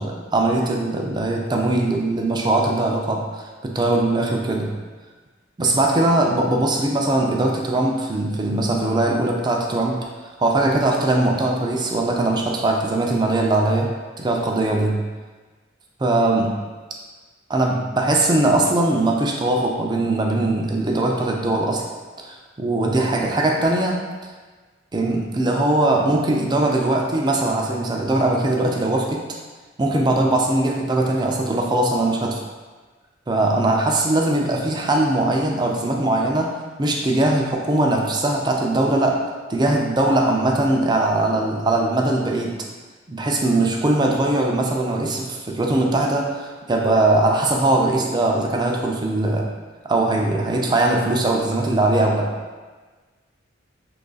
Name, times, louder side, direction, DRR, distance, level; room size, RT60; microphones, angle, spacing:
voice 1, 0.0-4.7 5.6-10.1 10.4-13.9 14.2-15.0 16.0-16.6 17.5-21.8 22.2-24.0 24.9-29.2 29.8-32.4 33.3-39.2 39.5-42.6 43.1-49.5 49.8-52.3, right 2 dB, 25° right, 0 dB, 0.4 m, -20 dB
3.1 x 2.4 x 3.9 m, 1.3 s
head